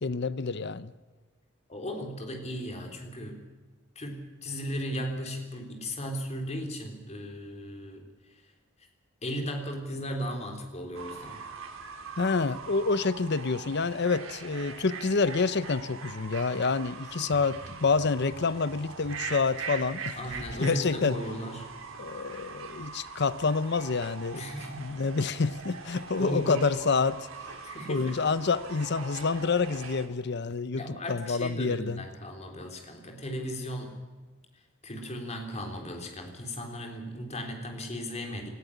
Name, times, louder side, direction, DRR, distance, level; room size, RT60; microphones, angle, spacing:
voice 1, 0.0-0.9 12.2-20.1 20.6-21.2 22.0-24.4 24.8-27.3 27.9-32.0, left 4 dB, 55° left, 16 dB, 0.7 m, -28 dB
voice 2, 1.7-3.4 4.0-8.0 9.2-11.4 20.2-21.7 24.3-24.9 25.9-26.7 27.6-28.2 30.7-34.0 34.8-38.5, equal, 35° left, 3 dB, 3.6 m, -36 dB
Fowl / Bird, 10.9-30.1, right 5 dB, 80° right, 3.2 m, -42 dB
sound 1, 17.2-20.7 21.1-21.3, equal, 40° right, 2.2 m, -50 dB
18.5 x 14.5 x 10.0 m, 1.3 s
head